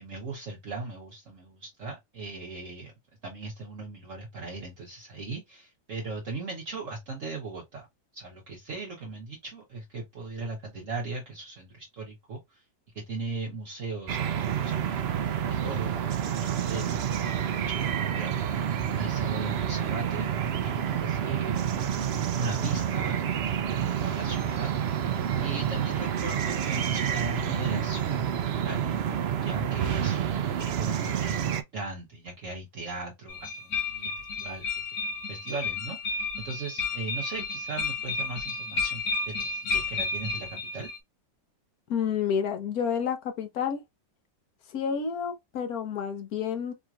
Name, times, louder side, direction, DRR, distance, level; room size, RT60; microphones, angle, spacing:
voice 1, 0.0-2.9 3.2-7.8 8.1-12.6 12.9-20.3 20.6-21.6 22.4-25.0 25.4-28.9 29.4-30.2 30.6-40.9, right 3 dB, 50° right, 1.3 m, -38 dB
sound 1, 14.1-31.6, right 9 dB, 80° right, 0.5 m, -29 dB
sound 2, 33.3-41.0, left 3 dB, 80° left, 2.0 m, -32 dB
voice 2, 41.9-43.8 44.7-46.7, left 7 dB, 65° left, 1.3 m, -29 dB
4.9 x 3.0 x 2.4 m
omnidirectional pair, 1.8 m